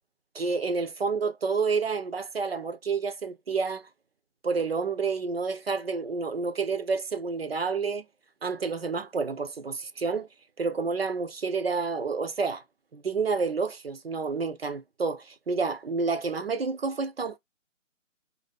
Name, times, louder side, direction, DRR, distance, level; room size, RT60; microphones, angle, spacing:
voice 1, 0.3-3.9 4.4-8.0 8.4-10.3 10.6-12.6 12.9-17.4, right 4 dB, 50° right, 0.6 m, -29 dB
4.6 x 2.7 x 4.0 m
figure-of-eight pair, 155°, 39 cm